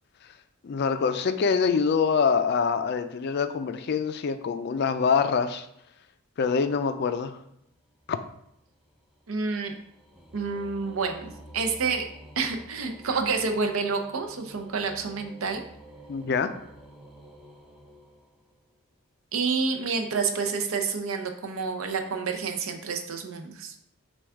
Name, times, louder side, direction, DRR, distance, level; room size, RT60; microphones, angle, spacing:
voice 1, 0.6-5.7 6.4-7.4 8.1-8.2 16.1-16.5, left 5 dB, 50° left, 10 dB, 0.3 m, -25 dB
sound 1, 7.8-18.8, right 1 dB, ahead, 0.5 m, -50 dB
voice 2, 9.3-9.7 10.3-12.1 12.4-15.6 19.3-23.7, right 4 dB, 80° right, 5 dB, 0.6 m, -29 dB
6.1 x 2.3 x 3.5 m, 0.75 s
head